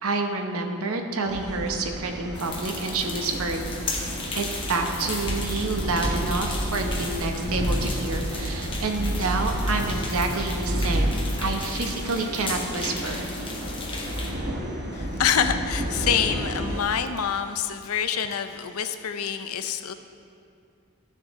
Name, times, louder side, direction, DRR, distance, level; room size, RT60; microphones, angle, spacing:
voice 1, 0.0-3.7 4.3-13.3, right 3 dB, 70° right, 4 dB, 1.0 m, -28 dB
sound 1, 1.3-16.8, equal, 45° right, 1.1 m, -30 dB
sound 2, 2.3-14.3, left 3 dB, 25° left, 0.9 m, -36 dB
voice 2, 14.9-19.9, left 8 dB, 75° left, 9 dB, 0.5 m, -26 dB
13.0 x 6.6 x 3.6 m, 2.4 s
head